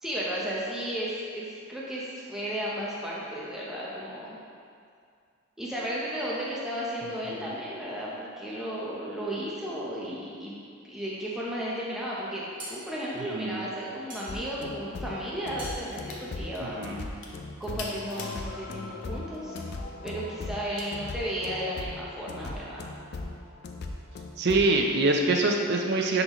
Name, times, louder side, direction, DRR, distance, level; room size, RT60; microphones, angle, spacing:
voice 1, 0.0-4.4 5.6-10.5 10.8-12.4 12.7-17.2 17.6-19.7 20.0-22.8, equal, ahead, -7 dB, 0.7 m, -34 dB
sound 1, 12.2-17.2, right 1 dB, 20° right, 1.5 m, -46 dB
sound 2, 14.3-24.8, left 2 dB, 50° left, 0.4 m, -38 dB
sound 3, 15.9-16.2 16.5-18.4 18.9-19.7 20.8-20.9, left 4 dB, 65° left, 0.8 m, -43 dB
voice 2, 16.6-17.0 24.4-26.2, right 2 dB, 50° right, 2 dB, 0.6 m, -24 dB
10.0 x 4.0 x 3.0 m, 2.3 s
head